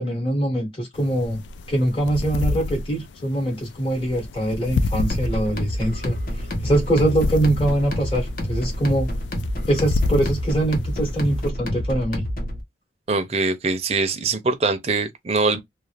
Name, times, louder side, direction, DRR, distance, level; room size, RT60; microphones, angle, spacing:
voice 1, 0.0-1.4 1.7-9.1 9.7-12.3, right 1 dB, 30° left, 1.1 m, -23 dB
sound 1, 0.9-11.5, left 3 dB, 80° left, 0.3 m, -29 dB
sound 2, 5.1-12.6, equal, 50° left, 0.8 m, -28 dB
voice 2, 13.1-15.6, right 3 dB, 35° right, 0.5 m, -23 dB
2.4 x 2.3 x 3.2 m
head